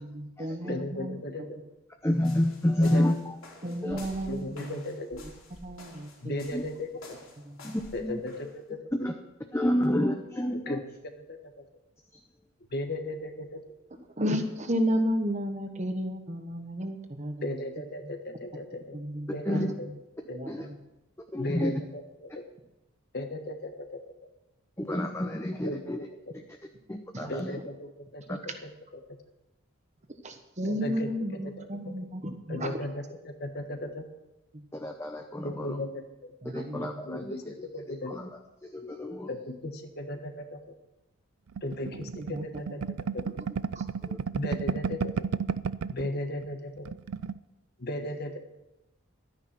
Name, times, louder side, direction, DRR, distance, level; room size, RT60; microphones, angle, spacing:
voice 1, 0.0-1.5 3.6-4.8 5.2-5.3 5.6-6.6 7.4-7.7 13.9-17.6 18.0-18.1 18.9-19.9 20.3-20.8 27.1-27.4 30.2-32.8 34.5-34.6 36.4-37.2 41.9-42.8 43.7-43.9, equal, 35° right, 6 dB, 1.3 m, -33 dB
voice 2, 0.7-1.4 2.8-3.1 4.3-5.2 6.2-7.2 7.9-8.8 10.7-10.8 11.1-11.7 12.7-13.6 17.4-19.0 19.3-19.9 20.3-20.4 21.4-22.4 23.1-24.0 25.6-26.0 27.3-28.4 30.7-31.1 32.5-34.0 35.4-36.0 37.1-38.1 39.3-40.6 41.6-42.8 43.1-43.2 44.3-45.3 45.9-46.9 47.8-48.4, left 1 dB, 45° left, 6 dB, 1.4 m, -36 dB
voice 3, 2.0-3.4 3.8-4.0 6.5-6.6 7.6-8.2 9.0-9.1 9.5-10.8 19.4-19.7 20.5-20.7 21.3-21.7 24.8-26.0 26.9-27.6 28.3-28.4 34.7-35.8 36.5-38.3 38.6-39.3 44.1-44.2, left 1 dB, 10° left, 4 dB, 0.7 m, -29 dB
sound 1, 2.1-8.5, left 2 dB, 70° left, 3.4 m, -50 dB
sound 2, 41.6-46.1 46.4-46.5 46.8-47.4, right 6 dB, 85° right, 0.4 m, -32 dB
13.0 x 9.8 x 6.0 m, 0.96 s
head